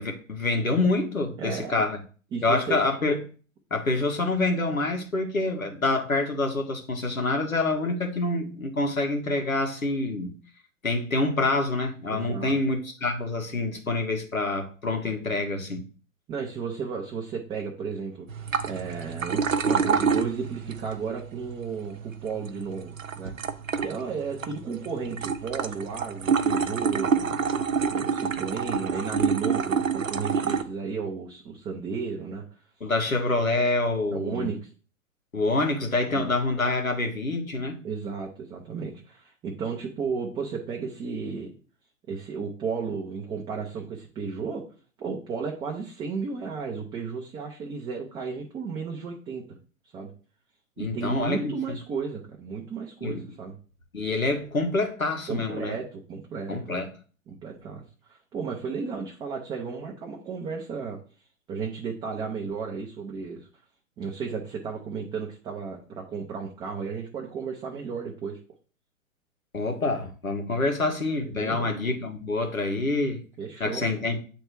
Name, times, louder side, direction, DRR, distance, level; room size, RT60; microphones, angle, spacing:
voice 1, 0.0-2.0 2.4-3.3 3.7-10.4 10.8-15.8 32.8-34.5 35.3-37.8 50.8-51.8 53.0-53.2 53.9-55.7 56.5-56.9 69.5-73.2 73.6-74.2, left 2 dB, 80° left, 1.7 m, -26 dB
voice 2, 1.4-1.8 2.3-2.8 12.1-12.5 16.3-23.3 23.8-27.4 27.9-32.4 34.1-34.7 36.1-36.3 37.8-41.5 42.1-44.7 45.0-49.4 49.9-50.1 50.8-53.5 55.3-56.7 57.3-57.8 58.1-61.0 61.5-63.5 64.0-68.4 71.3-71.7 73.4-74.1, right 5 dB, 10° right, 0.6 m, -33 dB
sound 1, 18.3-30.6, right 6 dB, 70° right, 0.9 m, -28 dB
8.7 x 3.5 x 4.7 m
figure-of-eight pair, 110°, 40 cm